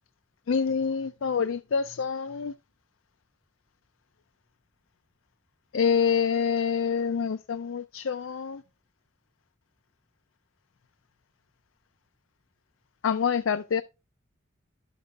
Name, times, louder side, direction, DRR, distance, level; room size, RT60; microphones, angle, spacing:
voice 1, 0.5-2.5 5.7-8.6 13.0-13.8, left 6 dB, 85° left, 0.4 m, -26 dB
12.0 x 6.6 x 2.4 m
head